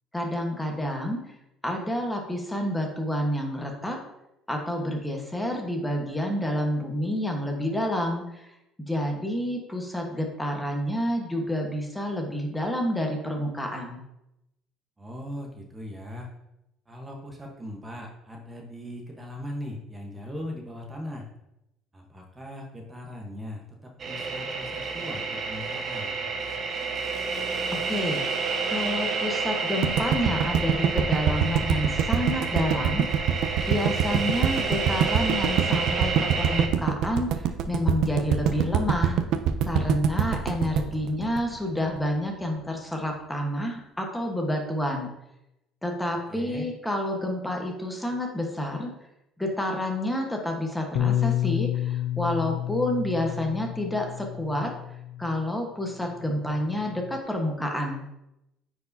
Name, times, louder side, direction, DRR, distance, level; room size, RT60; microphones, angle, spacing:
voice 1, 0.1-1.2 1.6-4.0 4.5-8.5 8.9-14.0 27.7-28.2 28.7-33.3 33.7-39.2 39.7-45.1 45.8-48.9 49.4-54.7 55.2-58.0, left 1 dB, 5° left, 1 dB, 1.2 m, -29 dB
voice 2, 15.0-16.3 16.9-21.3 21.9-26.1 34.0-34.5 46.3-46.7, left 1 dB, 15° right, 0 dB, 1.1 m, -39 dB
sound 1, 24.0-36.7, right 4 dB, 40° right, 1.0 m, -30 dB
sound 2, 29.8-42.0, right 8 dB, 70° right, 0.5 m, -24 dB
Bass guitar, 51.0-55.5 56.2-57.2, left 12 dB, 70° left, 0.3 m, -30 dB
9.4 x 4.7 x 2.7 m, 0.87 s
cardioid pair, 110°, 0 cm